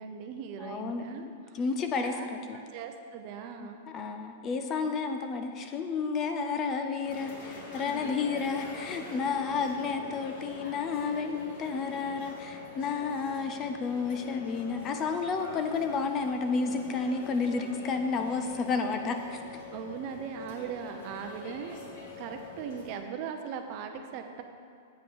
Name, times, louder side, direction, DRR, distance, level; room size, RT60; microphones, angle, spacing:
voice 1, 0.0-1.2 2.0-2.3 2.5-3.8 7.8-8.1 19.7-21.8 22.2-24.4, right 7 dB, 40° right, 6 dB, 0.6 m, -39 dB
voice 2, 0.6-2.6 3.6-3.7 3.9-19.6, left 4 dB, 25° left, 6 dB, 0.5 m, -31 dB
sound 1, 7.0-22.9, left 4 dB, 55° left, 2.2 m, -44 dB
8.3 x 5.4 x 5.5 m, 2.4 s
supercardioid pair, 155°, 0 cm